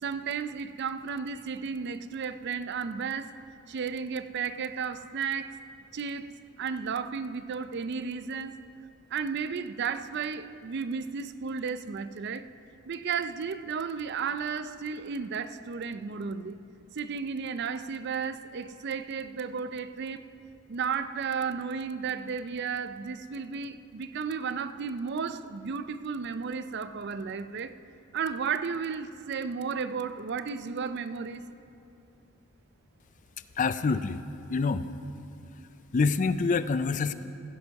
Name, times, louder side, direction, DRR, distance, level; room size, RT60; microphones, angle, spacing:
voice 1, 0.0-3.3 3.7-5.6 5.9-6.3 6.6-8.6 9.1-12.4 12.9-16.6 16.9-20.2 20.7-27.7 28.1-31.4, right 6 dB, 50° right, 0.4 m, -33 dB
voice 2, 33.6-34.2 34.5-34.9 35.9-37.1, left 4 dB, 35° left, 0.4 m, -26 dB
16.0 x 10.5 x 4.7 m
head